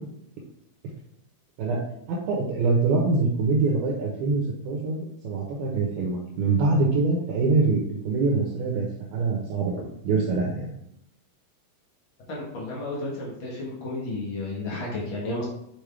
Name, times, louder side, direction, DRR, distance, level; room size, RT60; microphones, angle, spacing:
voice 1, 2.1-8.9 9.1-10.7, right 3 dB, 75° right, -1 dB, 2.7 m, -24 dB
voice 2, 12.3-15.4, left 2 dB, 80° left, -5 dB, 1.1 m, -32 dB
6.3 x 6.2 x 3.5 m, 0.76 s
omnidirectional pair, 4.9 m